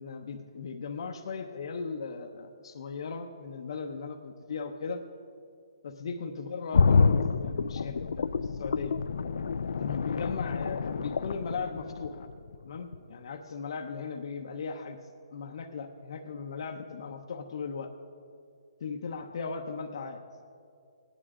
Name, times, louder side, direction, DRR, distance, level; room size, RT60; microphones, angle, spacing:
voice 1, 0.0-5.0 5.8-8.9 9.8-12.3 12.6-15.0 15.3-17.9 18.8-20.2, left 5 dB, 55° left, 4 dB, 0.8 m, -38 dB
sound 1, 6.7-12.5 12.9-13.0, left 5 dB, 80° left, 0.4 m, -27 dB
17.5 x 9.9 x 3.7 m, 2.3 s
hypercardioid pair, 160°, 3 cm